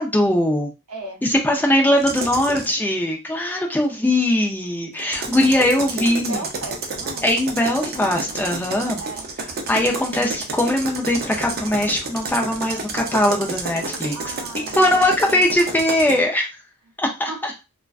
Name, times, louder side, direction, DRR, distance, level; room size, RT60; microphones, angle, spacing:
voice 1, 0.0-0.7 1.2-6.4 7.2-9.0 9.7-14.3 14.7-16.5 17.0-17.5, left 1 dB, 10° left, 0.4 m, -20 dB
voice 2, 0.9-1.2 5.3-7.3 9.0-9.3 14.1-15.4 17.3-17.4, right 3 dB, 75° right, 0.7 m, -35 dB
sound 1, 2.0-2.7 5.0-16.2, right 3 dB, 45° right, 0.5 m, -30 dB
2.4 x 2.2 x 2.3 m
head